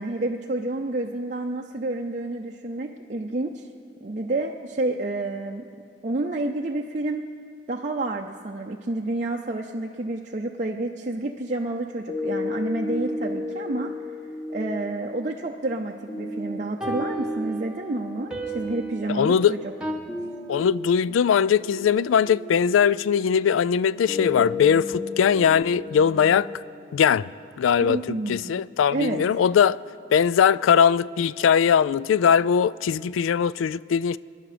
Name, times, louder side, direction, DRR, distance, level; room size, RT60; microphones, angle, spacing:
voice 1, 0.0-3.7 4.0-5.7 6.0-7.2 7.7-13.9 14.5-19.6 27.8-28.6 28.9-29.3, right 2 dB, 40° right, 0.5 m, -29 dB
sound 1, 12.1-28.1, left 2 dB, 20° left, 1.7 m, -34 dB
sound 2, 16.8-19.9, right 1 dB, 5° right, 1.3 m, -35 dB
voice 2, 19.1-19.5 20.5-26.5 26.9-27.3 27.6-28.0 28.3-29.8 30.1-34.2, left 7 dB, 90° left, 0.3 m, -20 dB
25.5 x 10.5 x 5.0 m
head